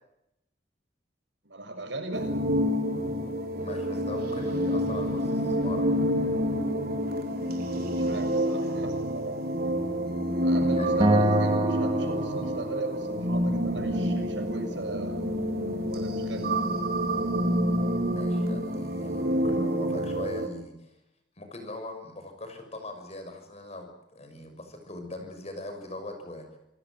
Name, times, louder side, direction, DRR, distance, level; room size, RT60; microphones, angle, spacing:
voice 1, 1.4-2.3 8.0-9.5 10.4-15.5 15.9-16.5, right 1 dB, 85° right, 5 dB, 6.9 m, -38 dB
sound 1, 2.1-20.5, equal, 55° right, 4.4 m, -28 dB
voice 2, 3.6-5.9 10.7-11.2 18.1-21.0 21.4-26.6, left 2 dB, 35° left, 6 dB, 6.5 m, -41 dB
Acoustic guitar, 11.0-14.3, right 1 dB, 25° right, 2.6 m, -28 dB
28.0 x 18.0 x 7.8 m, 0.84 s
head